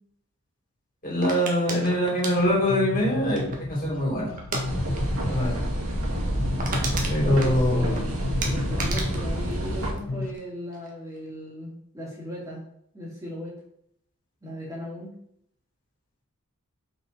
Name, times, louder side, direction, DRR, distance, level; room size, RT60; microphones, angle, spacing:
voice 1, 1.0-4.3 5.3-5.5 7.1-8.1, equal, 40° left, -4 dB, 3.4 m, -24 dB
sound 1, 1.2-3.8 4.4-4.7 4.9-5.2 5.5-5.6 6.0-6.1 6.3-8.0 8.4-10.4 10.7-11.2, right 3 dB, 35° right, 1.5 m, -34 dB
sound 2, 2.4-10.3, left 2 dB, 75° left, 0.7 m, -33 dB
sound 3, 4.6-9.9, right 1 dB, 65° right, 2.3 m, -28 dB
voice 2, 7.2-12.6 12.9-13.5 14.4-15.1, equal, 15° right, -6 dB, 2.6 m, -37 dB
7.0 x 5.7 x 4.2 m, 0.71 s
head